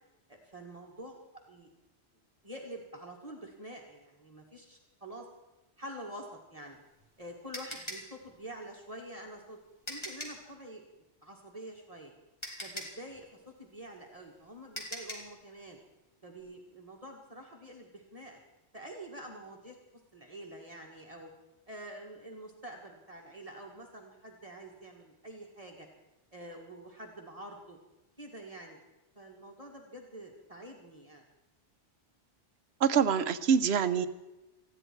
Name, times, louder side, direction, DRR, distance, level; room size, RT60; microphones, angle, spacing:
voice 1, 0.3-1.7 2.4-5.3 5.8-6.8 7.2-9.6 9.9-10.8 11.2-12.1 12.6-15.8 16.2-18.4 18.7-19.8 20.1-21.3 21.7-25.9 26.3-27.8 28.2-28.8 29.2-31.2, right 1 dB, 35° right, 0 dB, 2.1 m, -47 dB
sound 1, 6.6-10.5 11.9-12.0 12.4-15.4, equal, 25° left, 3.0 m, -42 dB
voice 2, 32.8-34.1, right 7 dB, 70° right, 12 dB, 1.1 m, -25 dB
19.5 x 14.5 x 4.7 m, 0.99 s
omnidirectional pair, 1.1 m